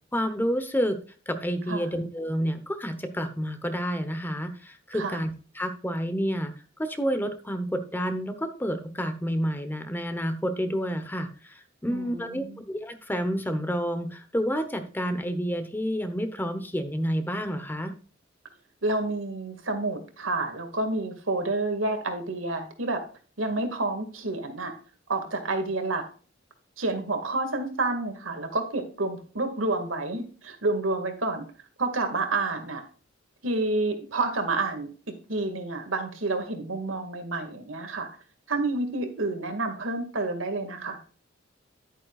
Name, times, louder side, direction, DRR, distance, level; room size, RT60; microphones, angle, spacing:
voice 1, 0.1-1.0 1.3-6.5 6.8-17.9, equal, 10° left, 9 dB, 0.9 m, -29 dB
voice 2, 11.9-12.6 18.8-23.0 23.4-24.7 25.1-26.0 26.8-31.5 31.8-32.8 33.4-38.1 38.5-41.0, right 2 dB, 90° right, 6 dB, 2.0 m, -29 dB
10.5 x 8.9 x 2.4 m, 0.38 s
head